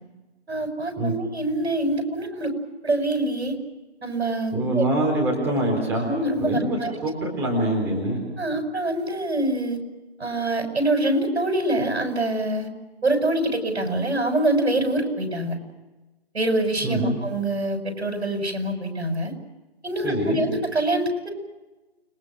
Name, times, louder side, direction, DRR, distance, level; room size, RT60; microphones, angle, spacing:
voice 1, 0.5-2.5 2.8-3.6 4.0-4.9 5.9-6.9 8.4-9.8 10.2-12.7 13.0-15.6 16.3-19.3 19.8-21.3, right 1 dB, 75° right, 5 dB, 7.4 m, -25 dB
voice 2, 4.5-6.1 6.4-8.2 16.8-17.2 20.0-20.4, right 1 dB, 5° right, -1 dB, 4.0 m, -24 dB
30.0 x 22.5 x 6.2 m, 1.1 s
figure-of-eight pair, 165°, 32 cm